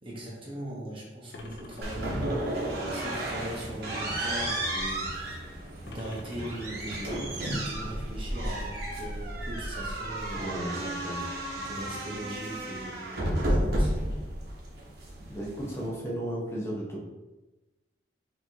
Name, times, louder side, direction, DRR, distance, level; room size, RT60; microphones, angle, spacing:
voice 1, 0.0-5.1 5.9-7.1 7.4-10.8 11.5-14.0, right 1 dB, 30° right, -4 dB, 1.3 m, -40 dB
sound 1, 1.3-2.8 5.9-7.4, left 2 dB, 65° left, 0.6 m, -47 dB
sound 2, 1.8-15.9, right 1 dB, 60° right, 1.1 m, -32 dB
voice 2, 10.3-11.3 15.3-17.0, right 1 dB, 15° left, -3 dB, 0.9 m, -34 dB
5.8 x 3.0 x 2.8 m, 1.1 s
head